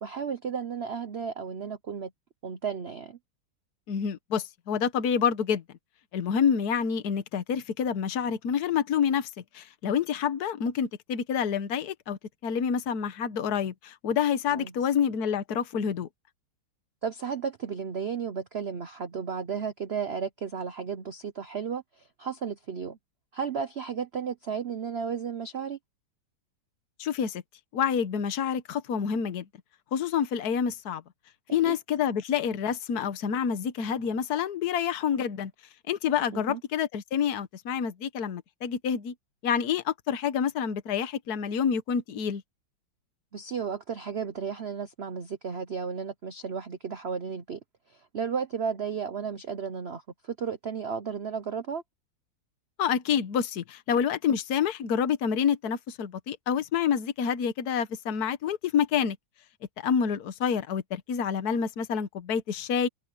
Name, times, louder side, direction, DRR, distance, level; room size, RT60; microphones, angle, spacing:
voice 1, 0.0-2.1 2.4-3.2 14.5-14.7 17.0-23.0 23.3-25.8 31.7-31.8 36.3-36.6 43.3-47.6 47.9-51.8, right 6 dB, 55° right, 0.7 m, -33 dB
voice 2, 3.9-5.6 6.1-9.3 9.5-16.1 27.0-27.4 27.7-29.4 29.9-31.0 31.5-35.5 35.9-39.1 39.4-42.4 52.8-59.2 59.8-62.9, left 7 dB, 55° left, 1.6 m, -28 dB
omnidirectional pair, 2.1 m